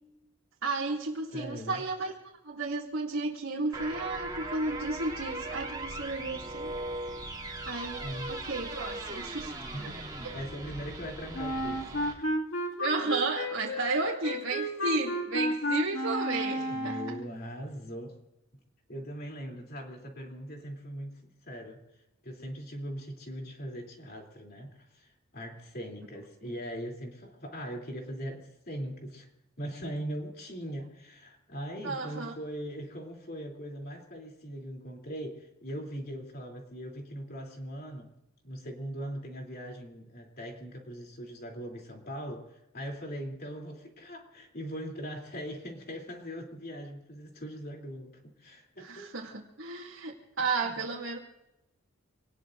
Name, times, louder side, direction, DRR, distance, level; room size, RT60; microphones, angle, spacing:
voice 1, 0.6-2.1 2.4-6.7 7.7-9.5 9.8-9.9 10.2-10.4 12.8-17.0 31.8-32.3 48.8-51.2, right 3 dB, 80° right, -5 dB, 2.4 m, -33 dB
voice 2, 1.3-1.8 8.0-8.4 9.7-12.3 16.7-18.2 18.9-21.8 22.2-29.3 29.6-38.1 38.4-49.1 50.4-50.7, equal, 50° left, 1 dB, 3.1 m, -40 dB
sound 1, 3.7-12.1, right 2 dB, 20° right, 2.7 m, -39 dB
Wind instrument woodwind instrument, 11.3-17.3, equal, 70° left, 2.2 m, -32 dB
26.5 x 19.5 x 2.6 m, 0.91 s
head